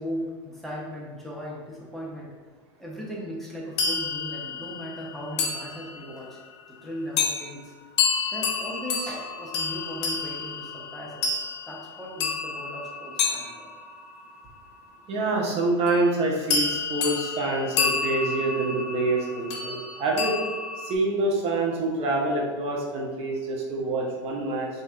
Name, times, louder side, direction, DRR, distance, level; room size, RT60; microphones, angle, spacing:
voice 1, 0.0-2.3 2.8-6.4 6.7-7.7 8.3-13.7, equal, ahead, -5 dB, 0.8 m, -37 dB
sound 1, 3.8-6.2 7.2-7.5 8.0-14.3 15.9-16.1 16.5-20.9, left 5 dB, 70° left, 0.7 m, -29 dB
voice 2, 15.1-20.4 20.8-24.7, right 2 dB, 40° right, -2 dB, 0.9 m, -26 dB
5.2 x 2.7 x 2.4 m, 1.4 s
hypercardioid pair, 105°, 15 cm